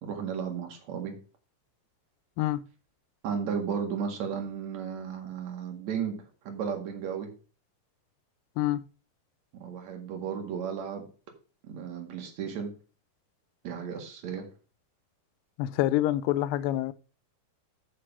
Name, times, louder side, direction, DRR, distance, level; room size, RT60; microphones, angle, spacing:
voice 1, 0.0-1.2 3.2-7.3 9.6-11.1 11.6-12.7 13.6-14.5, right 7 dB, 55° right, 3.0 m, -34 dB
voice 2, 15.6-16.9, left 14 dB, 80° left, 2.2 m, -26 dB
7.8 x 6.0 x 5.9 m
omnidirectional pair, 4.1 m